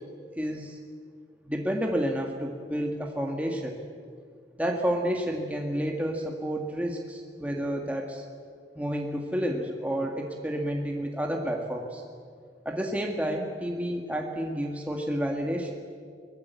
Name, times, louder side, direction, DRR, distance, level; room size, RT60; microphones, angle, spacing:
voice 1, 0.4-0.8 1.5-3.8 4.6-8.3 8.8-12.0 12.7-15.7, equal, 10° right, 1 dB, 1.8 m, -30 dB
24.0 x 21.0 x 8.3 m, 2.1 s
head